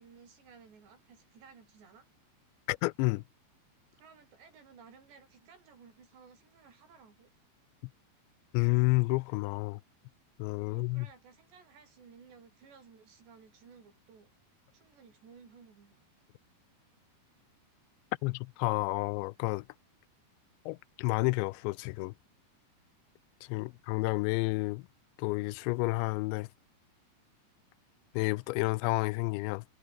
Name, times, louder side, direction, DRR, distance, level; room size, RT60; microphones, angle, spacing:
voice 1, 0.0-2.1 3.9-7.3 10.7-14.3 14.7-16.1 23.6-24.0, right 6 dB, 75° right, 7.7 m, -57 dB
voice 2, 2.7-3.2 8.5-9.8 10.4-11.1 18.2-19.7 20.7-22.1 23.5-24.9 25.2-26.5 28.1-29.6, left 24 dB, 90° left, 2.8 m, -30 dB
omnidirectional pair, 5.0 m